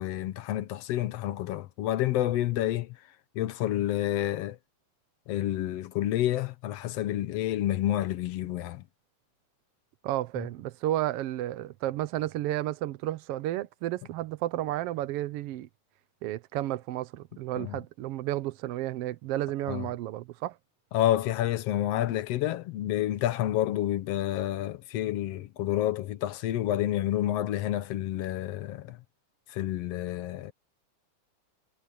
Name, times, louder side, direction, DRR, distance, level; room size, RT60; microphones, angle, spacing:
voice 1, 0.0-3.0 3.3-4.6 5.3-8.8 17.6-17.8 19.7-19.9 20.9-29.0 29.5-30.5, left 13 dB, 70° left, 1.7 m, -29 dB
voice 2, 10.0-15.7 16.2-20.6, right 14 dB, 80° right, 1.3 m, -32 dB
omnidirectional pair, 3.5 m